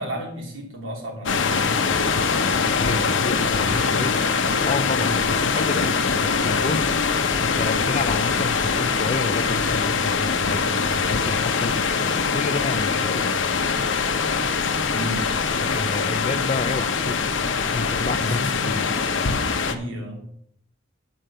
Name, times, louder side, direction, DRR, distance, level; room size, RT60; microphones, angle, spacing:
voice 1, 0.0-1.8 3.6-4.0 5.0-5.2 14.9-15.3 18.2-18.8 19.6-20.3, equal, 80° right, 0 dB, 2.9 m, -32 dB
sound 1, 1.3-19.8, left 5 dB, 70° left, 0.8 m, -23 dB
voice 2, 2.6-4.2 4.6-7.0 7.4-13.3 15.5-18.9 19.4-19.5, left 3 dB, 35° left, 13 dB, 0.4 m, -30 dB
9.3 x 5.0 x 6.7 m, 0.68 s
head